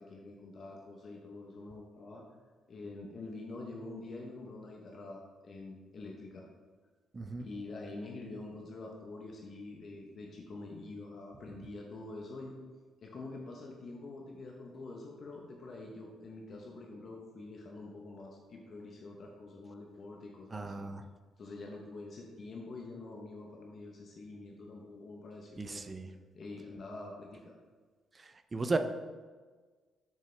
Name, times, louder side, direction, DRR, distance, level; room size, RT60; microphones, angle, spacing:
voice 1, 0.0-2.2 2.7-6.5 7.4-12.5 13.0-20.9 21.4-25.8 26.3-27.5, left 2 dB, 40° left, -1 dB, 0.8 m, -46 dB
voice 2, 7.1-7.5 20.5-21.0 25.6-26.1 28.5-28.8, right 3 dB, 20° right, 9 dB, 0.4 m, -34 dB
6.7 x 6.4 x 3.3 m, 1.4 s
cardioid pair, 165°, 0 cm